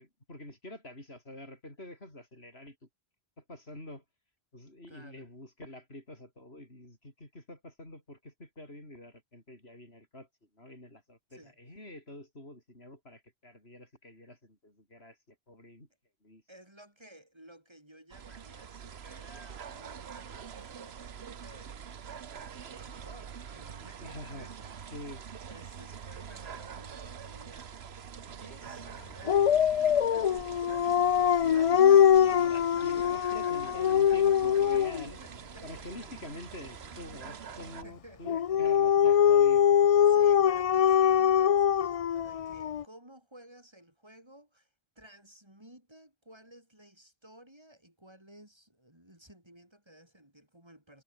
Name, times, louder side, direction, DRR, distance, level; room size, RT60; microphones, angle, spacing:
voice 1, 0.0-2.9 3.4-4.0 4.5-10.3 10.5-15.9 16.2-16.4 24.0-24.5 24.9-25.2 31.4-35.2 35.6-39.8, left 1 dB, 75° left, 8.0 m, -47 dB
voice 2, 4.9-5.3 11.3-11.6 16.5-21.8 22.3-25.2 25.4-28.0 28.4-31.0 31.2-32.0 32.5-34.2 34.5-34.8 35.1-36.3 37.8-38.8 40.1-44.7 44.9-51.0, right 1 dB, 25° right, 6.6 m, -55 dB
sound 1, 18.1-37.8, right 7 dB, 75° right, 1.3 m, -45 dB
Dog, 29.3-35.1 38.3-42.8, left 9 dB, 55° left, 0.4 m, -23 dB
omnidirectional pair, 1.1 m